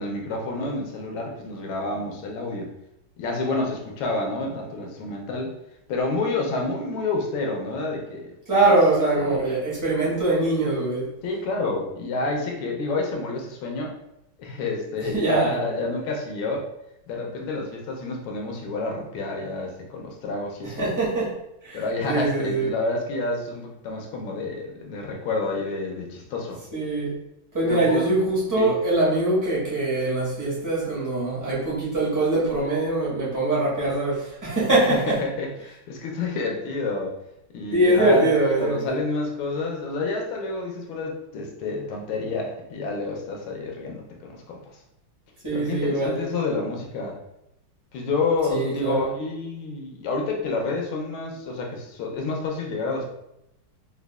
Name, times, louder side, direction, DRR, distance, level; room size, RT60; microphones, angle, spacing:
voice 1, 0.0-2.7 3.2-5.6 5.9-8.3 8.6-8.8 9.1-9.4 11.2-13.9 14.4-16.7 17.1-20.9 21.7-26.6 27.6-28.0 28.6-28.7 34.9-37.2 37.5-44.6 45.5-47.2 47.9-53.1, left 3 dB, 80° left, 0 dB, 1.5 m, -29 dB
voice 2, 8.5-11.1 15.0-15.5 20.8-21.3 21.6-22.7 26.7-27.1 27.5-35.2 37.7-39.0 45.4-46.3 48.5-49.1, right 2 dB, 15° right, -8 dB, 0.6 m, -23 dB
4.9 x 2.3 x 2.3 m, 0.83 s
omnidirectional pair, 2.3 m